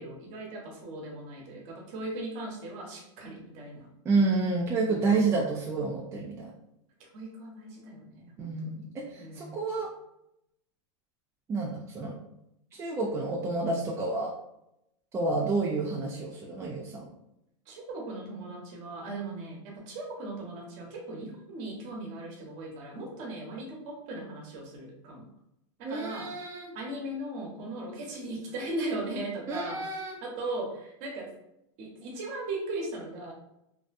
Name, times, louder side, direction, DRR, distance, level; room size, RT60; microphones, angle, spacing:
voice 1, 0.0-3.9 4.9-5.4 7.0-9.6 17.7-25.3 25.8-26.3 26.7-29.8 30.2-31.3 31.8-33.3, right 2 dB, 45° right, 0 dB, 0.9 m, -38 dB
voice 2, 4.1-6.5 8.4-8.8 9.1-9.9 11.5-12.1 12.7-14.3 15.1-17.0 25.8-26.7 29.5-30.1, right 3 dB, 15° right, -3 dB, 0.4 m, -29 dB
2.6 x 2.1 x 2.5 m, 0.81 s
hypercardioid pair, 125°, 16 cm